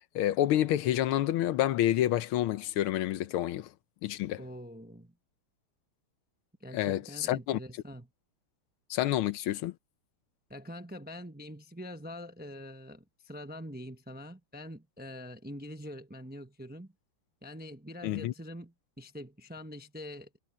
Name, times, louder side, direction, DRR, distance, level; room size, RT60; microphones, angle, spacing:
voice 1, 0.0-3.7 4.0-4.4 6.7-7.6 8.9-9.7 18.0-18.3, left 13 dB, 90° left, 1.7 m, -28 dB
voice 2, 4.4-5.1 6.6-8.1 10.5-16.9 17.4-20.4, equal, 10° right, 0.5 m, -44 dB
omnidirectional pair, 2.3 m